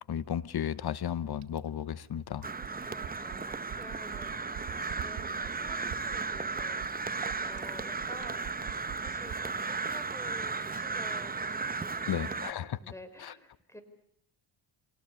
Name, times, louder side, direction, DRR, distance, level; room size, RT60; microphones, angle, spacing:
voice 1, 0.0-2.5 12.1-12.8 13.2-13.3, left 9 dB, 50° left, 17 dB, 1.0 m, -34 dB
Fill (with liquid), 1.4-9.5 10.8-10.9, right 12 dB, 80° right, 2.2 m, -45 dB
Crow, 2.4-12.5, right 4 dB, 20° right, 1.0 m, -35 dB
voice 2, 2.9-8.7 9.0-13.8, equal, 5° left, 10 dB, 5.4 m, -51 dB
26.0 x 18.0 x 8.5 m, 0.71 s
cardioid pair, 75°, 49 cm